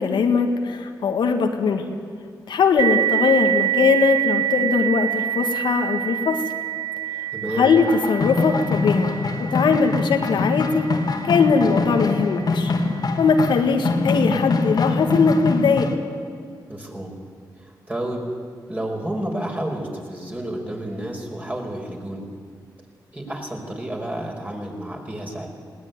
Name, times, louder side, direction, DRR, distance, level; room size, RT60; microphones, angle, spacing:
voice 1, 0.0-1.8 2.5-6.4 7.6-9.1 9.5-10.9 11.2-12.7 13.2-15.9, left 5 dB, 85° left, 4 dB, 1.9 m, -20 dB
sound 1, 2.8-12.0, right 12 dB, 75° right, 0.9 m, -27 dB
voice 2, 7.3-7.7 16.7-17.1 17.6-18.2 18.7-22.2 23.1-25.5, right 1 dB, 20° right, 0 dB, 5.2 m, -30 dB
sound 2, 7.8-16.0, left 3 dB, 60° left, 2.0 m, -24 dB
20.5 x 17.5 x 9.6 m, 2.1 s
cardioid pair, 70°, 8 cm